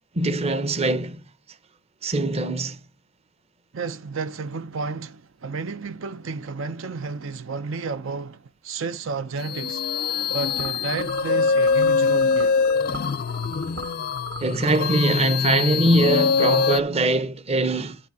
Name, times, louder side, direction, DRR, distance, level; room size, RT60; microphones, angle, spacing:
voice 1, 0.1-1.2 2.0-2.8 14.4-18.0, right 2 dB, 30° right, 0.6 m, -22 dB
voice 2, 3.7-9.8 10.3-12.6, right 4 dB, 80° right, 0.5 m, -32 dB
sound 1, 9.4-16.8, left 5 dB, 50° left, 0.3 m, -23 dB
sound 2, 10.5-15.2, right 2 dB, 65° right, 0.9 m, -40 dB
11.0 x 4.1 x 4.7 m
head